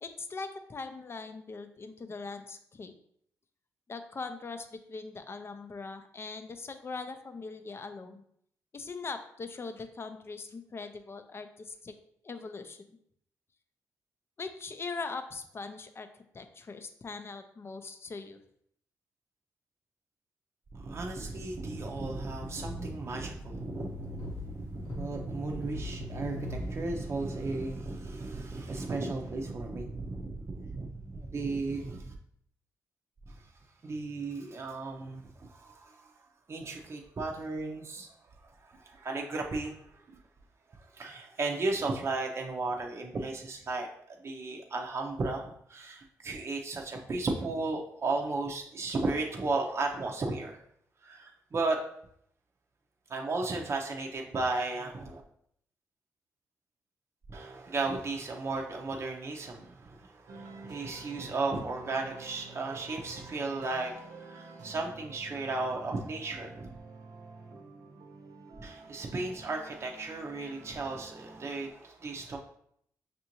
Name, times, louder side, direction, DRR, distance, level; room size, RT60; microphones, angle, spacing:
voice 1, 0.0-2.9 3.9-8.2 8.7-11.9 12.2-13.0 14.4-16.1 16.3-18.4, left 4 dB, 35° left, 8 dB, 0.5 m, -41 dB
voice 2, 20.7-32.1 33.8-35.2 35.5-36.1 36.5-38.1 38.4-40.2 40.9-50.6 51.0-51.8 53.1-55.2 57.3-66.7 68.6-72.4, right 3 dB, 40° right, 0 dB, 0.6 m, -35 dB
sound 1, 21.5-26.7, left 2 dB, 85° left, 0.9 m, -43 dB
sound 2, 60.3-71.7, right 3 dB, 70° right, 0.8 m, -49 dB
5.4 x 2.6 x 2.9 m, 0.69 s
supercardioid pair, 60°, 7 cm